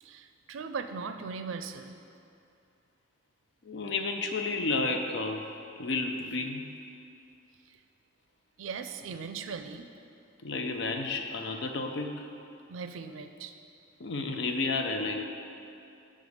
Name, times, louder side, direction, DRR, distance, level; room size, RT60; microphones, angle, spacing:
voice 1, 0.0-1.9 7.7-7.8 8.6-9.9 12.7-13.5, right 5 dB, 85° right, 8 dB, 0.4 m, -39 dB
voice 2, 3.6-5.5 5.8-6.7 10.4-12.3 14.0-15.2, left 3 dB, 65° left, 4 dB, 0.5 m, -31 dB
7.0 x 3.7 x 6.4 m, 2.6 s
head